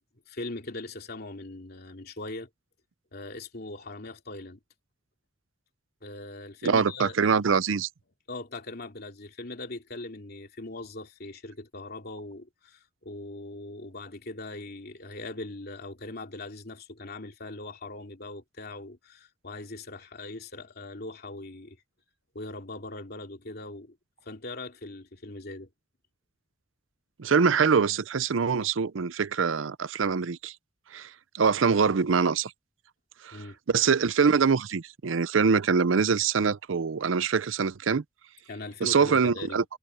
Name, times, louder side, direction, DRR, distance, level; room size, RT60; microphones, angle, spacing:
voice 1, 0.3-2.5 3.1-4.6 6.0-7.3 8.3-21.8 22.3-24.0 24.2-25.7 33.3-33.6 38.5-39.6, left 2 dB, 55° left, 2.9 m, -40 dB
voice 2, 6.6-7.9 27.2-30.5 30.9-32.5 33.2-33.4 33.7-38.0 38.8-39.6, right 5 dB, 85° right, 0.6 m, -24 dB
head